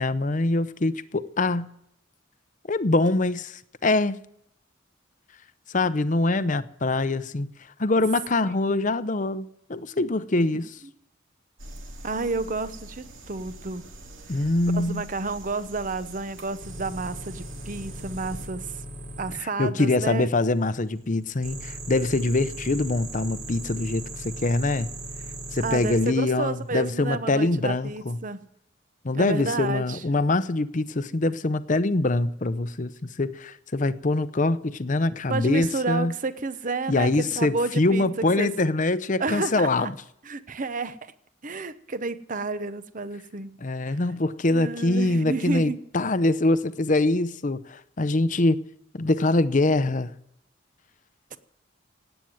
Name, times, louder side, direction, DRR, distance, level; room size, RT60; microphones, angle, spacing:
voice 1, 0.0-1.7 2.7-4.2 5.7-7.5 7.8-10.8 14.3-15.1 19.4-24.9 25.5-28.2 29.0-36.1 36.9-39.9 43.6-48.6 48.9-50.1, left 2 dB, 40° left, 0.7 m, -24 dB
sound 1, 11.6-18.5, right 1 dB, 90° right, 2.3 m, -44 dB
voice 2, 12.0-13.8 14.7-18.8 19.2-20.3 25.6-28.4 29.1-30.0 35.3-38.1 38.4-38.5 39.2-39.9 40.3-41.1 41.4-43.6 43.9-44.0 44.5-45.8 51.3-51.4, right 3 dB, 40° right, 0.9 m, -31 dB
sound 2, 16.6-19.4 21.4-26.1 27.7-28.1, right 1 dB, 65° right, 5.1 m, -38 dB
17.5 x 9.0 x 7.8 m
head